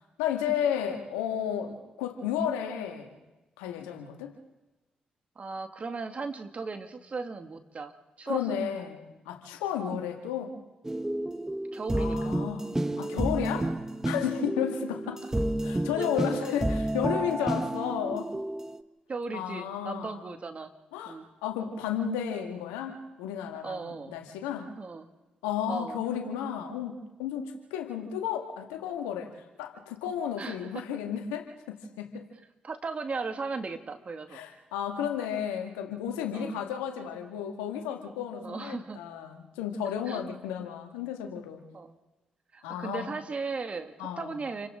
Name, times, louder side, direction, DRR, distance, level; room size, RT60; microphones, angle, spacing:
voice 1, 0.2-3.2 3.6-4.4 8.3-10.6 11.9-12.7 13.0-13.7 14.0-15.3 15.6-18.3 19.3-20.2 20.9-24.7 25.4-32.3 34.3-41.7 42.6-43.1 44.0-44.4, left 8 dB, 90° left, 4 dB, 1.9 m, -33 dB
voice 2, 5.4-8.6 9.8-10.0 11.7-12.4 16.0-16.1 19.1-20.7 21.1-21.3 23.6-24.2 24.8-25.1 25.7-26.0 30.4-30.8 32.6-34.4 36.3-36.6 38.4-39.0 40.1-40.2 41.7-42.0 42.5-44.7, right 4 dB, 45° right, 6 dB, 2.2 m, -37 dB
sound 1, 10.8-18.8, right 1 dB, 15° right, 1.1 m, -31 dB
29.0 x 24.5 x 3.8 m, 1.1 s
hypercardioid pair, 45°, 3 cm